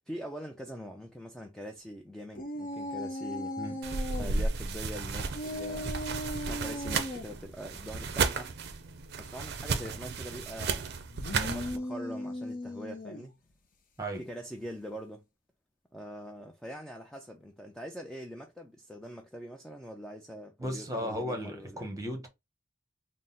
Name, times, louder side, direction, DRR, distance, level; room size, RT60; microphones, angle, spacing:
voice 1, 0.1-3.5 4.2-6.0 6.3-8.5 9.2-11.0 11.3-13.3 14.2-15.2 15.9-21.9, equal, 5° left, 0.3 m, -43 dB
sound 1, 2.3-4.3 5.3-7.3 11.1-13.3, left 1 dB, 40° left, 0.7 m, -37 dB
sound 2, 3.8-11.8, right 4 dB, 50° right, 0.5 m, -33 dB
voice 2, 20.6-22.3, equal, 15° right, 0.9 m, -35 dB
3.9 x 2.0 x 3.9 m
head